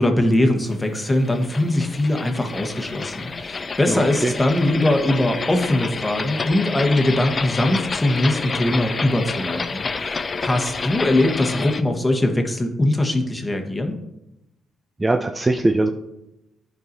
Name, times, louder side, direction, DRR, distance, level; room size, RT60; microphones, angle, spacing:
voice 1, 0.0-14.0, left 1 dB, 20° left, 4 dB, 1.1 m, -21 dB
sound 1, 0.7-11.8, left 4 dB, 35° left, 0.4 m, -29 dB
voice 2, 3.9-4.3 15.0-15.9, right 2 dB, 20° right, 5 dB, 0.4 m, -21 dB
10.0 x 4.7 x 2.7 m, 0.90 s
supercardioid pair, 65°, 0 cm